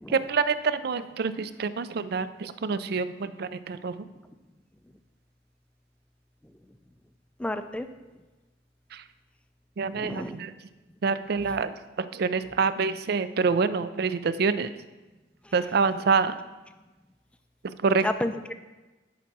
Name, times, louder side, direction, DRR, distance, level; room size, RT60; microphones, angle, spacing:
voice 1, 0.1-3.9 8.9-9.0 9.8-10.5 11.0-14.7 15.5-16.4 17.8-18.1, right 5 dB, 60° right, 13 dB, 0.4 m, -26 dB
voice 2, 7.4-7.9 9.9-10.4 18.0-18.5, left 1 dB, 5° left, 9 dB, 0.4 m, -31 dB
9.4 x 4.7 x 6.1 m, 1.2 s
head